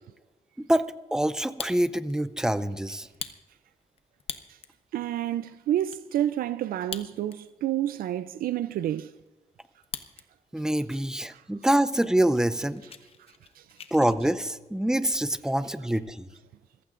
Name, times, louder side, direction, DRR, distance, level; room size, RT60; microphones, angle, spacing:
voice 1, 1.1-3.1 10.5-12.8 13.9-16.3, right 1 dB, 5° right, 0.5 m, -25 dB
Fire, 1.3-2.1 2.5-2.6 3.1-4.8 5.3-5.4 5.6-6.0 6.7-7.6 7.9-8.0 8.5-10.3 10.6-11.0 11.6-11.7 11.9-12.1 12.4-14.2, left 6 dB, 40° left, 0.8 m, -41 dB
voice 2, 4.9-9.1 11.3-11.4 13.6-13.7, right 12 dB, 85° right, 0.4 m, -29 dB
27.0 x 15.0 x 2.5 m
wide cardioid pair, 160°, 15 cm